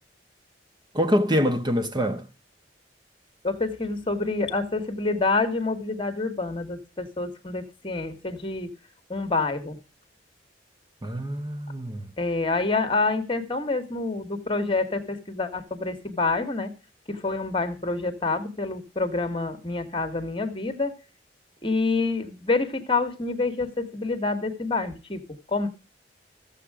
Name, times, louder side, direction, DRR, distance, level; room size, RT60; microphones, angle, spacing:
voice 1, 0.9-2.2 11.0-12.1, equal, 25° right, 1.4 m, -25 dB
voice 2, 3.4-8.7 9.1-9.8 12.2-16.7 17.1-20.9 21.6-25.2 25.5-25.7, left 3 dB, 30° left, 1.7 m, -27 dB
14.0 x 7.5 x 5.0 m
head